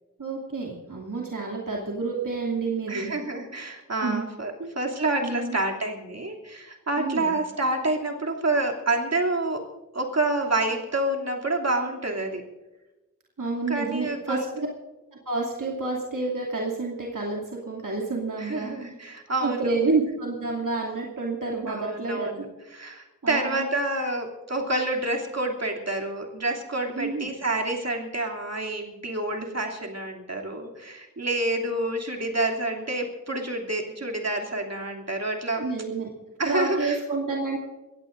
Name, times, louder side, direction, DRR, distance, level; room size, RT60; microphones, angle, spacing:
voice 1, 0.2-3.1 4.0-4.2 5.2-5.6 7.0-7.4 13.4-14.7 15.3-18.7 19.4-22.4 23.2-23.7 26.9-27.3 35.6-36.1 36.4-37.6, right 3 dB, 75° right, -2 dB, 2.7 m, -29 dB
voice 2, 2.9-9.7 9.9-12.4 13.7-14.5 18.4-19.7 21.7-22.4 22.7-35.6 36.4-37.0, right 2 dB, 50° right, 0 dB, 2.9 m, -28 dB
22.5 x 17.0 x 2.6 m, 1.1 s
wide cardioid pair, 50°, 32 cm